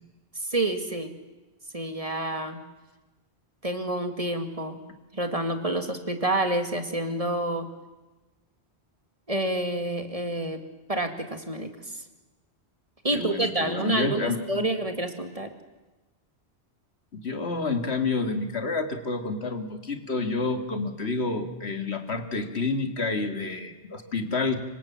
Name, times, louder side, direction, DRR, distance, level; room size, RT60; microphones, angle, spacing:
voice 1, 0.4-1.2 1.7-2.6 3.6-4.8 5.1-7.7 9.3-10.6 10.9-12.0 13.0-15.5, right 1 dB, 35° right, 7 dB, 2.2 m, -28 dB
voice 2, 13.1-14.7 17.1-24.6, left 3 dB, 75° left, 7 dB, 2.4 m, -29 dB
26.0 x 24.0 x 7.4 m, 1.1 s
omnidirectional pair, 1.1 m